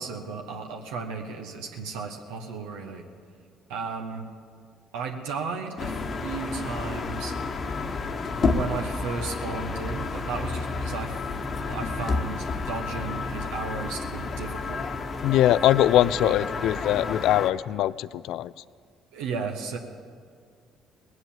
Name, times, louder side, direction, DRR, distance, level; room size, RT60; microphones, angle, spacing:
voice 1, 0.0-3.1 3.7-4.3 4.9-7.4 8.4-11.2 11.7-14.9 16.2-16.3 19.1-19.8, right 5 dB, 85° right, 2 dB, 1.1 m, -34 dB
sound 1, 5.8-17.5, left 4 dB, 45° left, 1.1 m, -31 dB
voice 2, 15.2-18.5, left 13 dB, 70° left, 19 dB, 0.3 m, -22 dB
19.0 x 8.1 x 7.3 m, 2.1 s
hypercardioid pair, 60°, 0 cm